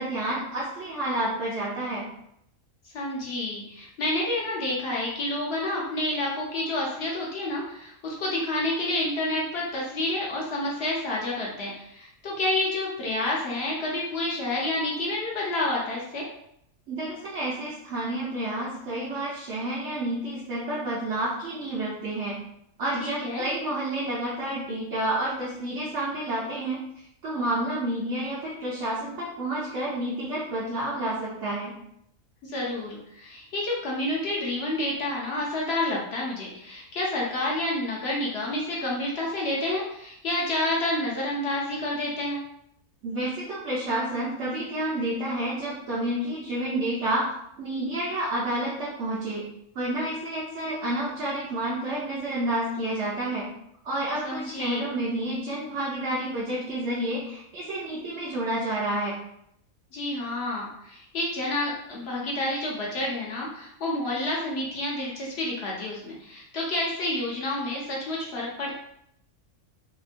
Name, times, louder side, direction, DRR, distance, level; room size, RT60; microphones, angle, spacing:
voice 1, 0.0-2.1 16.9-22.4 22.8-26.8 27.2-31.7 43.0-47.2 47.6-49.4 49.7-53.5 53.8-59.1, right 1 dB, 65° right, -8 dB, 0.9 m, -29 dB
voice 2, 2.9-16.2 23.0-23.4 32.4-42.4 54.2-54.9 59.9-68.8, left 1 dB, 60° left, -4 dB, 0.7 m, -29 dB
2.8 x 2.1 x 2.5 m, 0.75 s
omnidirectional pair, 1.5 m